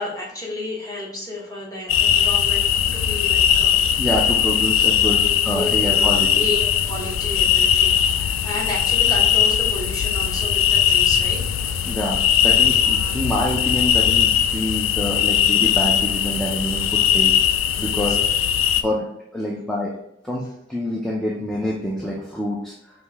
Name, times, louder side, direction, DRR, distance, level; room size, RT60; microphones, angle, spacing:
voice 1, 0.0-3.7 4.1-4.2 4.9-11.4 12.6-13.2 17.7-18.2, left 1 dB, 20° left, -4 dB, 1.1 m, -32 dB
sound 1, 1.9-18.8, left 9 dB, 90° left, 0.3 m, -19 dB
voice 2, 4.0-6.5 11.8-17.3 17.8-18.2 18.8-19.1 19.3-19.9 20.2-22.7, left 1 dB, ahead, -4 dB, 0.4 m, -26 dB
5.2 x 2.7 x 3.3 m, 0.80 s
head